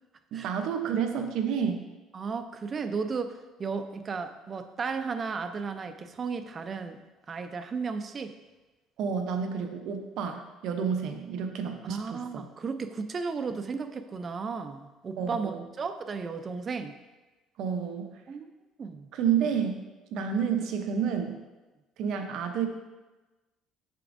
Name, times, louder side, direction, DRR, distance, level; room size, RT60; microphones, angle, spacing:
voice 1, 0.3-1.9 9.0-12.4 15.2-15.6 17.6-18.2 19.1-19.8 20.1-21.4 22.0-22.7, right 7 dB, 65° right, 5 dB, 0.7 m, -30 dB
voice 2, 2.1-7.0 7.3-8.3 11.9-16.9 18.3-18.5 18.8-19.1, right 5 dB, 30° right, 8 dB, 0.4 m, -34 dB
6.7 x 6.0 x 2.6 m, 1.1 s
cardioid pair, 125°, 0 cm